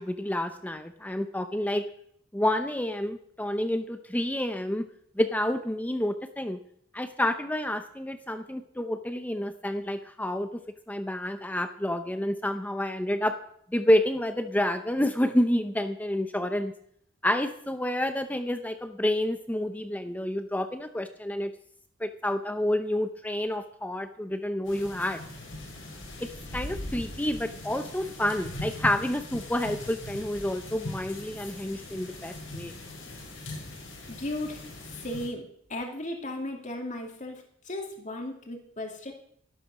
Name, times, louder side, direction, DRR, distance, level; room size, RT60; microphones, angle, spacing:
voice 1, 0.0-1.8 2.3-4.8 5.2-6.6 6.9-10.5 10.9-13.4 13.7-16.7 17.2-21.5 22.0-25.2 26.2-32.7, left 1 dB, 10° left, 8 dB, 0.6 m, -29 dB
sound 1, 24.7-35.3, left 1 dB, 70° left, 5.6 m, -40 dB
voice 2, 34.1-34.6 34.9-35.4 35.7-39.1, left 1 dB, 40° left, 2 dB, 2.6 m, -36 dB
12.5 x 12.0 x 6.1 m, 0.66 s
head